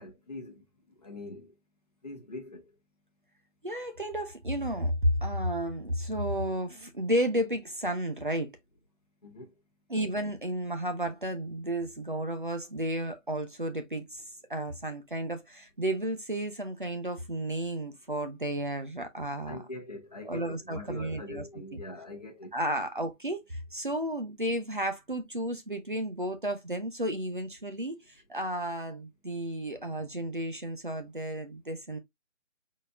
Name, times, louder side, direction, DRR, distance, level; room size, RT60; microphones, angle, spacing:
voice 1, 0.0-1.6 2.0-2.8 9.2-9.5 19.4-22.6, left 1 dB, 30° left, 1.1 m, -43 dB
voice 2, 3.6-8.6 9.9-14.2 14.5-19.6 20.3-21.4 22.5-32.0, right 1 dB, 40° right, 0.7 m, -32 dB
4.2 x 4.1 x 2.4 m
figure-of-eight pair, 175°, 38 cm